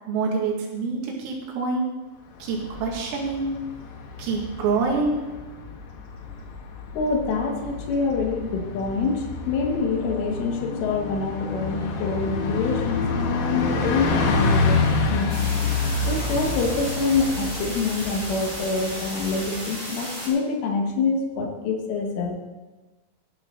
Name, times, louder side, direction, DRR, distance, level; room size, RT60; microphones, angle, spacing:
voice 1, 0.1-1.9 2.4-3.5 4.2-5.2, right 4 dB, 80° right, 0 dB, 4.8 m, -26 dB
Bus, 2.4-19.5, left 3 dB, 90° left, 4.5 m, -28 dB
voice 2, 6.9-14.8 15.1-15.4 16.1-22.4, left 4 dB, 75° left, 2 dB, 3.9 m, -26 dB
sound 1, 15.3-20.3, right 1 dB, 20° right, 3.8 m, -34 dB
16.5 x 11.0 x 3.9 m, 1.2 s
omnidirectional pair, 6.0 m